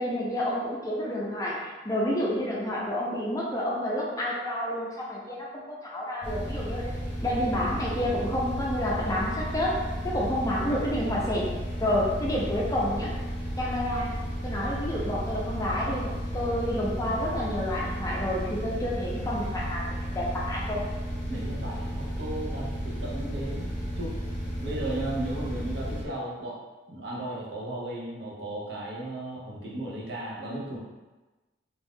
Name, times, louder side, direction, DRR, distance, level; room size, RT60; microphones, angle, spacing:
voice 1, 0.0-6.9 7.2-9.7 10.0-11.5 11.8-13.1 13.6-14.1 14.4-20.8, left 1 dB, 20° left, -5 dB, 0.5 m, -29 dB
sound 1, 6.2-26.0, equal, 45° left, 1.0 m, -33 dB
voice 2, 21.3-24.2 24.6-26.6 26.9-30.8, right 1 dB, 65° right, -5 dB, 0.8 m, -35 dB
2.5 x 2.4 x 3.5 m, 1.2 s
head